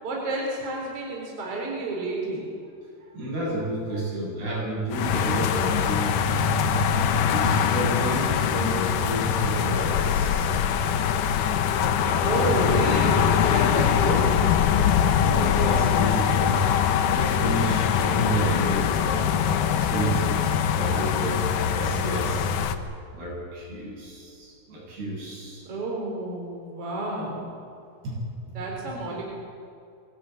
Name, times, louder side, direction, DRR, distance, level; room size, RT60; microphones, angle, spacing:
voice 1, 0.0-2.5 12.2-14.4 25.6-27.5 28.5-29.2, right 2 dB, 35° right, -2 dB, 4.8 m, -30 dB
voice 2, 3.1-6.6 7.1-10.7 11.1-11.6 12.0-12.1 12.5-12.8 13.0-13.2 15.1-16.7 17.0-22.7 23.1-25.7 28.0-28.2 28.5-28.6, right 1 dB, 70° right, -3 dB, 9.4 m, -31 dB
sound 1, 4.9-22.8, left 8 dB, 70° left, 2.2 m, -23 dB
23.0 x 17.0 x 9.1 m, 2.4 s
omnidirectional pair, 4.8 m